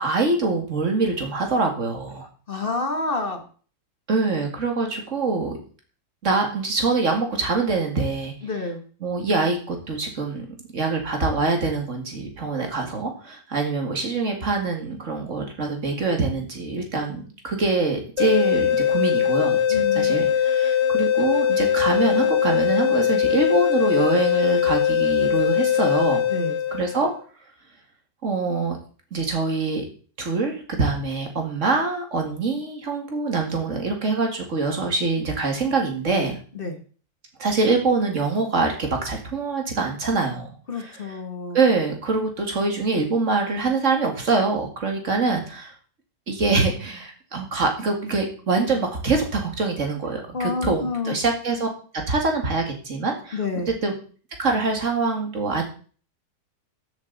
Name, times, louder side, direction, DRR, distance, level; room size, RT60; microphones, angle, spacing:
voice 1, 0.0-2.3 4.1-5.6 6.2-8.3 9.0-10.5 10.7-26.2 26.7-27.1 28.2-28.8 29.1-29.9 30.2-36.4 37.4-40.5 40.8-41.2 41.5-45.7 46.3-51.7 51.9-53.4 53.7-53.9 54.4-55.6, right 3 dB, 50° right, 2 dB, 2.4 m, -24 dB
voice 2, 2.5-3.4 8.4-8.8 19.7-20.2 26.3-26.6 36.5-36.8 40.7-41.6 50.3-51.2 53.3-53.7, left 3 dB, 35° left, 6 dB, 1.5 m, -28 dB
sound 1, 18.2-27.1, left 9 dB, 60° left, 0.7 m, -21 dB
13.0 x 8.0 x 4.0 m, 0.42 s
omnidirectional pair, 1.7 m